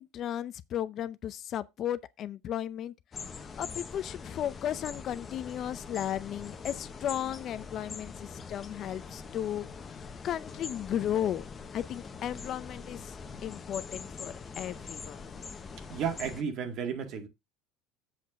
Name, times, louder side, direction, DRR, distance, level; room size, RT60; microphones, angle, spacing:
voice 1, 0.0-2.9 3.6-11.4 11.7-13.1 13.4-15.2, left 10 dB, 40° left, 0.5 m, -35 dB
sound 1, 3.1-16.4, left 5 dB, 25° left, 1.1 m, -43 dB
voice 2, 15.9-17.3, right 7 dB, 50° right, 1.9 m, -33 dB
7.6 x 4.4 x 6.1 m
cardioid pair, 135°, 0 cm